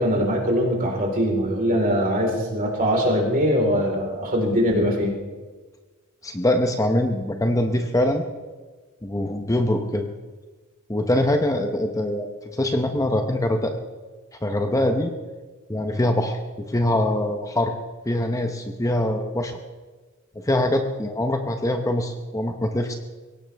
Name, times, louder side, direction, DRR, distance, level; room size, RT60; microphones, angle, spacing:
voice 1, 0.0-5.1, equal, 40° right, 0 dB, 4.1 m, -22 dB
voice 2, 6.2-8.2 9.0-10.1 10.9-13.8 14.4-15.1 15.7-16.4 16.7-17.7 18.1-19.6 20.4-22.9, left 1 dB, 15° left, 5 dB, 0.9 m, -23 dB
22.5 x 17.5 x 3.5 m, 1.3 s
head